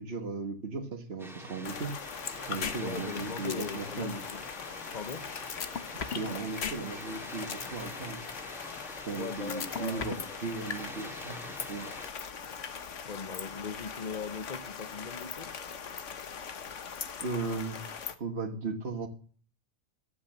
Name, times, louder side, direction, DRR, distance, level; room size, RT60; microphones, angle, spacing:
voice 1, 0.0-1.9 2.5-4.2 6.1-8.2 9.1-11.9 17.2-19.1, right 3 dB, 60° right, 1.7 m, -37 dB
Water, 1.2-12.1, equal, ahead, 2.0 m, -46 dB
sound 1, 1.6-18.1, left 6 dB, 85° left, 1.5 m, -41 dB
sound 2, 2.6-2.8 3.1-3.2 3.5-3.7 5.5-6.3 6.6-6.8 7.1-7.7 9.5-10.3, left 7 dB, 65° left, 1.3 m, -34 dB
voice 2, 2.8-4.4 4.9-5.3 9.2-10.4 13.0-15.5, left 5 dB, 40° left, 1.0 m, -40 dB
14.0 x 8.4 x 7.2 m
omnidirectional pair, 1.2 m